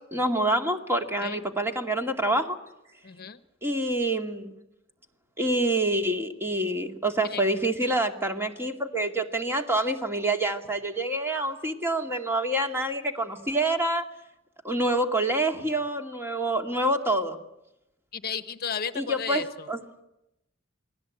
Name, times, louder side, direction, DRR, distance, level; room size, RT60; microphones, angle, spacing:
voice 1, 0.1-2.6 3.6-4.6 5.4-14.1 14.6-17.4 19.0-19.8, right 1 dB, 10° right, 4 dB, 2.3 m, -27 dB
voice 2, 3.0-3.4 7.2-7.4 18.1-19.7, left 6 dB, 50° left, 13 dB, 1.0 m, -34 dB
29.0 x 19.5 x 8.5 m, 0.89 s
head